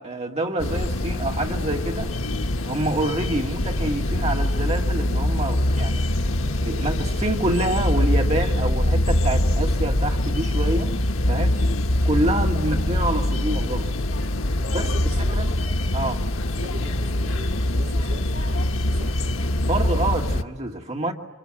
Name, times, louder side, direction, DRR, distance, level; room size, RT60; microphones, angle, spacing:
voice 1, 0.0-2.1 2.6-6.1 6.6-10.9 11.3-11.6 12.0-13.9 14.7-14.9 15.3-15.5 15.9-16.2 19.6-21.1, right 1 dB, 30° right, 2.1 m, -27 dB
sound 1, 0.6-20.4, left 1 dB, 85° left, 1.2 m, -23 dB
voice 2, 14.6-15.5 16.6-19.2, right 1 dB, 50° right, 2.6 m, -42 dB
28.5 x 25.5 x 7.7 m
head